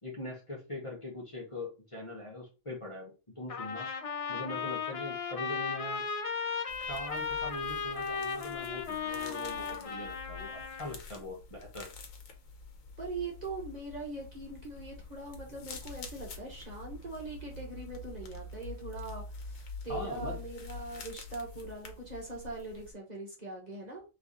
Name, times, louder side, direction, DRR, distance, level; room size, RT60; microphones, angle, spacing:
voice 1, 0.0-3.9 4.3-6.1 6.8-11.9 19.9-20.4, left 2 dB, 25° left, -3 dB, 1.2 m, -42 dB
Trumpet, 3.5-11.0, left 5 dB, 50° left, 0.4 m, -36 dB
sound 1, 6.7-22.9, left 3 dB, 85° left, 1.3 m, -47 dB
voice 2, 13.0-24.0, right 3 dB, 35° right, -3 dB, 1.3 m, -41 dB
3.4 x 3.3 x 4.0 m, 0.30 s
omnidirectional pair, 1.4 m